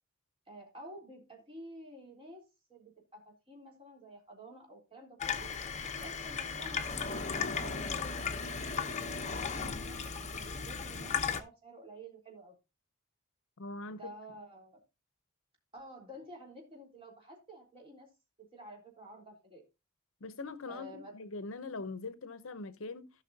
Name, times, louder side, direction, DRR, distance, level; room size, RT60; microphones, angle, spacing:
voice 1, 0.5-5.5 6.0-8.2 8.8-12.5 13.9-14.8 15.7-18.1 18.5-19.6 20.7-21.2, right 1 dB, 25° right, 3.6 m, -51 dB
Water tap faucet / Sink (filling or washing), 5.2-11.4, left 5 dB, 35° left, 0.8 m, -36 dB
voice 2, 13.6-14.1 20.2-23.1, left 3 dB, 65° left, 0.8 m, -42 dB
16.0 x 5.8 x 2.7 m
head